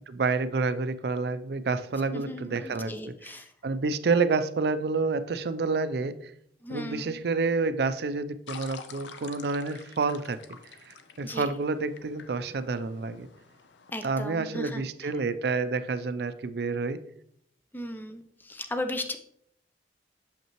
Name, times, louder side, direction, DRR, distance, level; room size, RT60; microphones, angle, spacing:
voice 1, 0.1-3.3 3.6-6.3 6.7-10.4 10.8-13.3 14.0-17.0, right 4 dB, 60° right, 12 dB, 0.4 m, -29 dB
voice 2, 2.1-3.5 6.6-7.2 11.2-11.5 13.9-15.1 17.7-19.2, left 1 dB, 10° left, 7 dB, 0.4 m, -36 dB
sound 1, 8.5-13.9, left 6 dB, 80° left, 0.5 m, -48 dB
6.6 x 5.4 x 3.0 m, 0.69 s
head